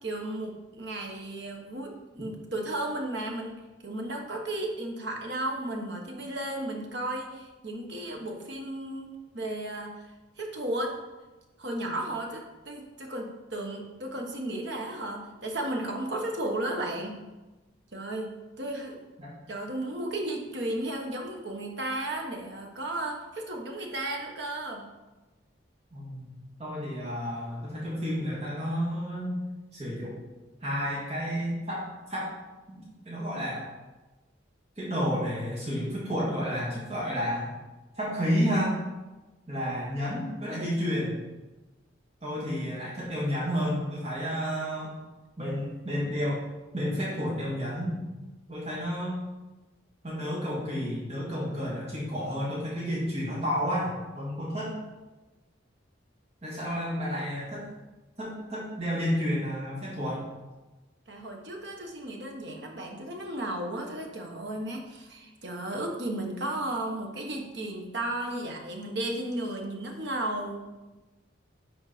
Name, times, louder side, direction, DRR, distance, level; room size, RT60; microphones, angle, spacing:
voice 1, 0.0-10.1 10.4-11.0 11.6-17.3 17.9-19.0 19.5-24.9 42.5-42.6 61.1-70.6, right 1 dB, 60° right, 1 dB, 1.4 m, -34 dB
voice 2, 25.9-29.4 29.7-30.1 30.6-32.3 32.7-33.7 34.8-37.5 38.0-38.8 39.5-41.1 42.2-44.9 45.4-46.4 46.7-48.0 48.5-49.2 50.0-54.8 56.4-57.7 58.2-60.3, equal, 30° right, -7 dB, 2.0 m, -31 dB
10.5 x 4.4 x 4.3 m, 1.1 s
head